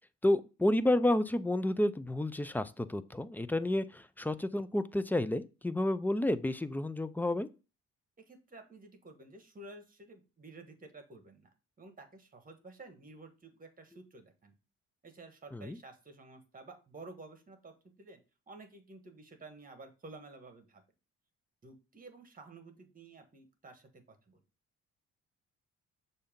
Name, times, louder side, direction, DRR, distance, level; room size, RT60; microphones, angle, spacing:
voice 1, 0.2-7.5 15.5-15.8, left 1 dB, 5° left, 13 dB, 0.4 m, -30 dB
voice 2, 8.2-11.5 11.8-14.5 15.0-18.2 18.5-20.8 21.6-24.4, right 3 dB, 30° right, 6 dB, 1.4 m, -52 dB
6.8 x 2.8 x 5.1 m, 0.31 s
cardioid pair, 90°, 30 cm